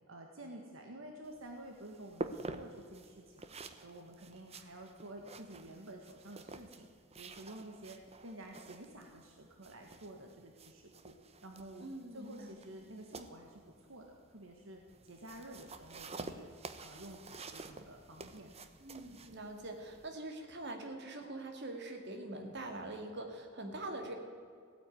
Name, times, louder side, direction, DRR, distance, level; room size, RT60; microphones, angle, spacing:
voice 1, 0.1-3.5 3.8-6.9 7.1-11.1 11.4-18.5, right 1 dB, 75° right, 2 dB, 1.6 m, -51 dB
sound 1, 1.2-20.1, right 3 dB, 30° right, 0.9 m, -49 dB
voice 2, 11.8-12.5 18.8-24.1, right 2 dB, 60° right, 4 dB, 2.3 m, -44 dB
16.0 x 9.4 x 9.3 m, 2.3 s
head